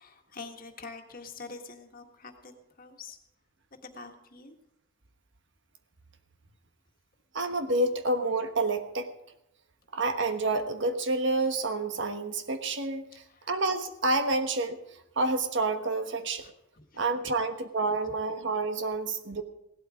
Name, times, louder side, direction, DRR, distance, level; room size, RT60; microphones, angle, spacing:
voice 1, 0.0-3.2 3.8-4.6 13.3-13.5 16.4-17.1, left 4 dB, 45° left, 4 dB, 1.7 m, -46 dB
voice 2, 7.3-9.1 9.9-13.1 13.5-14.8 15.2-16.4 16.9-19.4, right 2 dB, 60° right, 8 dB, 1.2 m, -28 dB
17.0 x 12.0 x 4.9 m, 0.85 s
head